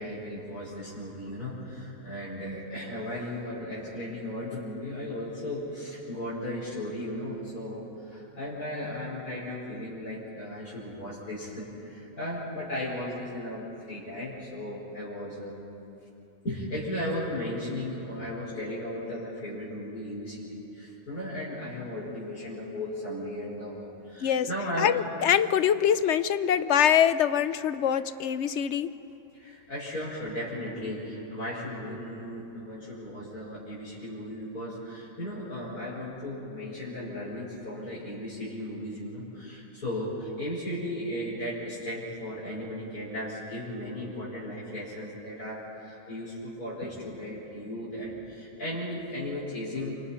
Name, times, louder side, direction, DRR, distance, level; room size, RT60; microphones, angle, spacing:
voice 1, 0.0-15.6 16.4-24.9 29.3-50.1, left 1 dB, 85° left, -8 dB, 5.6 m, -36 dB
voice 2, 24.8-28.9, left 9 dB, 60° left, 13 dB, 0.9 m, -24 dB
29.0 x 25.5 x 5.7 m, 2.9 s
omnidirectional pair, 1.5 m